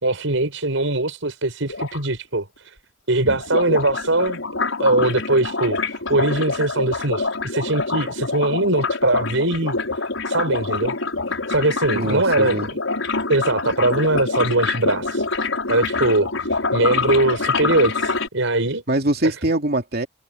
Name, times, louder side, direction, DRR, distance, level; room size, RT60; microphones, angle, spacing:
voice 1, 0.0-2.7 3.1-4.4 4.8-10.9 11.3-12.6 13.3-18.8 19.2-19.3, right 2 dB, 80° right, 5.6 m, -21 dB
sound 1, 1.7-2.0 3.2-18.3, left 3 dB, 85° left, 6.3 m, -25 dB
voice 2, 11.9-12.7 18.9-20.1, right 1 dB, 50° right, 2.8 m, -23 dB
head